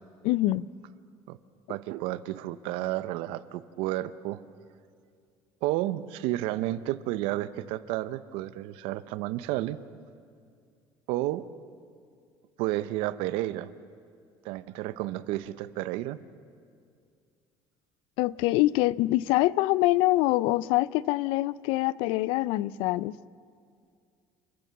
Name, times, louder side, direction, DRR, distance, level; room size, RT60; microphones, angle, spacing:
voice 1, 0.2-0.7 18.2-23.2, left 17 dB, 80° left, 0.5 m, -25 dB
voice 2, 1.7-4.4 5.6-9.8 11.1-11.5 12.6-13.7 14.4-16.2, right 15 dB, 85° right, 0.8 m, -31 dB
29.5 x 14.5 x 7.1 m
cardioid pair, 155°, 9 cm